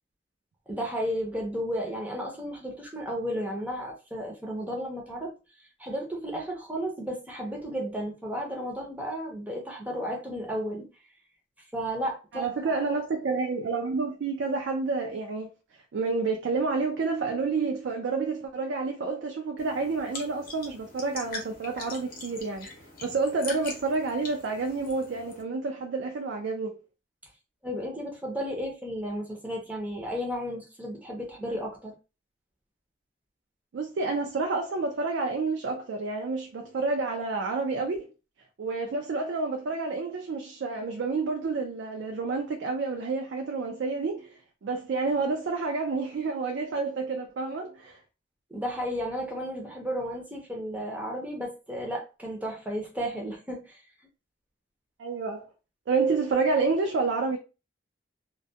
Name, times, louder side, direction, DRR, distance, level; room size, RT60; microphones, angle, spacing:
voice 1, 0.7-5.3 5.8-10.9 11.7-12.5 27.6-31.9 48.5-53.8, equal, 10° right, 0.5 m, -33 dB
voice 2, 12.3-15.5 15.9-22.7 23.0-26.8 33.7-38.1 38.6-48.0 55.0-55.5 55.9-57.4, right 4 dB, 70° right, 0.4 m, -29 dB
sound 1, 19.6-25.4, left 3 dB, 50° left, 0.7 m, -42 dB
2.2 x 2.1 x 2.6 m
head